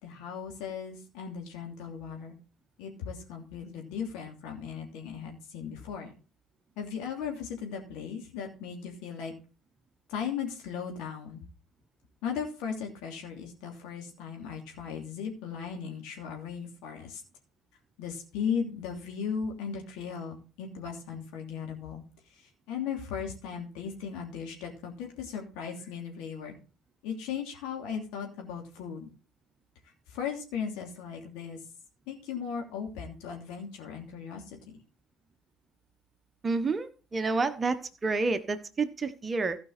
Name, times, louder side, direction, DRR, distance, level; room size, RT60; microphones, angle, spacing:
voice 1, 0.0-2.4 2.8-6.1 6.8-9.3 10.1-11.4 12.2-17.2 18.0-22.0 22.3-26.6 27.0-29.1 30.1-31.6 32.1-34.4, left 7 dB, 65° left, 1 dB, 2.8 m, -37 dB
voice 2, 36.4-39.6, right 3 dB, 30° right, 10 dB, 1.2 m, -29 dB
16.0 x 5.3 x 4.3 m, 0.36 s
figure-of-eight pair, 55°, 0 cm